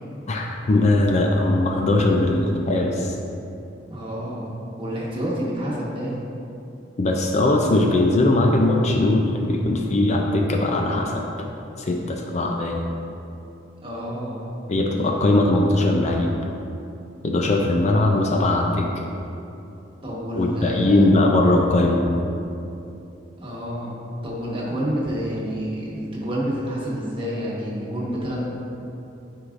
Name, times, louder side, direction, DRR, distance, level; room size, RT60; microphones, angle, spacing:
voice 1, 0.3-3.2 7.0-11.2 11.8-12.9 14.7-16.3 17.2-18.9 20.4-22.0, left 2 dB, 40° left, 1 dB, 0.4 m, -20 dB
voice 2, 3.9-4.5 4.8-6.2 13.8-14.4 20.0-21.1 23.4-24.0 24.2-28.5, equal, 30° right, -6 dB, 1.3 m, -28 dB
9.6 x 4.7 x 2.5 m, 2.8 s
head